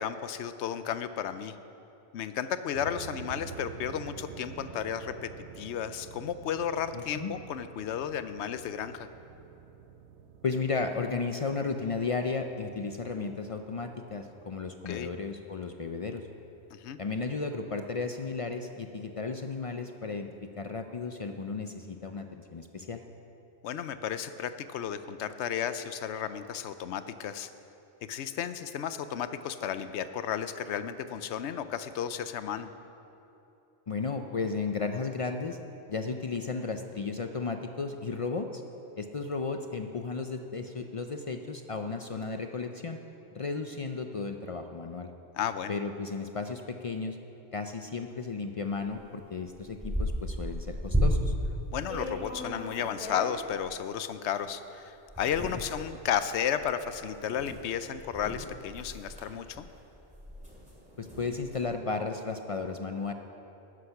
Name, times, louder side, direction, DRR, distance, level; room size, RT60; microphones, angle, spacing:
voice 1, 0.0-1.6 2.1-5.3 5.6-9.1 14.9-15.1 16.7-17.0 23.6-27.5 28.1-32.7 45.3-45.8 51.7-59.6, left 8 dB, 75° left, 12 dB, 0.9 m, -33 dB
sound 1, 2.7-17.9, right 7 dB, 75° right, 0.9 m, -49 dB
voice 2, 6.9-7.3 10.4-16.2 17.0-23.0 33.9-35.6 35.9-38.6 39.0-43.0 43.3-45.1 45.7-47.2 47.5-51.3 61.0-63.1, left 4 dB, 50° left, 6 dB, 0.4 m, -34 dB
sound 2, 48.9-49.0 49.3-51.5 51.9-53.7 54.4-54.5 55.1-61.6, equal, 5° right, 2.8 m, -34 dB
12.5 x 9.8 x 5.8 m, 3.0 s
omnidirectional pair, 1.2 m